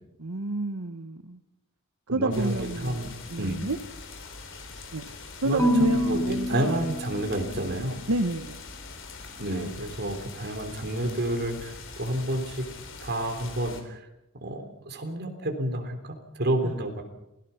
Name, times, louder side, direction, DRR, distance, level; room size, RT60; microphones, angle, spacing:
voice 1, 0.2-1.4 2.1-3.0 3.3-3.8 4.9-5.0 5.4-6.8 8.1-8.6 16.6-16.7, right 2 dB, 70° right, 8 dB, 1.1 m, -29 dB
voice 2, 2.1-3.1 3.4-3.6 5.4-8.0 9.4-12.7 13.0-14.0 14.4-17.0, right 1 dB, 50° right, 5 dB, 3.5 m, -30 dB
sound 1, 2.3-13.8, left 3 dB, 60° left, 3.6 m, -43 dB
Marimba xylophone / Wood, 5.6-7.8, left 1 dB, 15° left, 1.0 m, -28 dB
27.5 x 18.0 x 5.8 m, 0.89 s
head